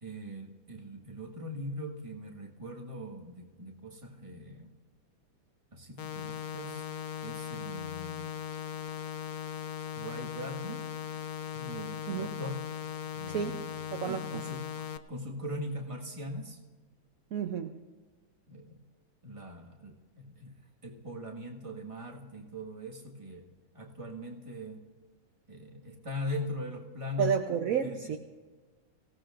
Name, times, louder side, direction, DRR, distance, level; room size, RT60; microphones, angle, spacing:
voice 1, 0.0-4.7 5.7-6.9 7.2-8.3 9.9-10.9 11.5-12.6 13.1-13.8 14.0-16.6 18.5-18.8 19.2-20.5 20.8-23.5 23.7-24.8 25.5-27.4 27.7-28.1, left 1 dB, 15° right, 0 dB, 1.5 m, -41 dB
sound 1, 6.0-15.0, left 9 dB, 75° left, 0.8 m, -39 dB
voice 2, 13.3-14.2 17.3-17.7 27.2-28.2, right 8 dB, 65° right, 5 dB, 0.8 m, -31 dB
25.5 x 17.0 x 2.5 m, 1.4 s
omnidirectional pair, 2.2 m